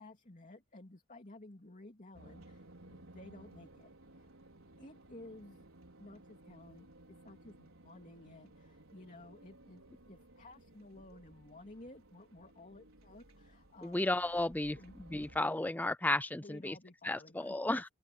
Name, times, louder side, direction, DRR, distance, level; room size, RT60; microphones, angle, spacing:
voice 1, 0.0-3.9 4.2-4.3 4.8-5.6 6.0-6.9 7.2-14.1 14.8-15.2 16.4-17.8, left 2 dB, 40° left, 3.0 m, -54 dB
sound 1, 2.1-15.4, right 1 dB, 90° right, 5.3 m, -58 dB
voice 2, 13.8-16.8 17.0-17.8, left 2 dB, 10° left, 0.5 m, -33 dB
open air
head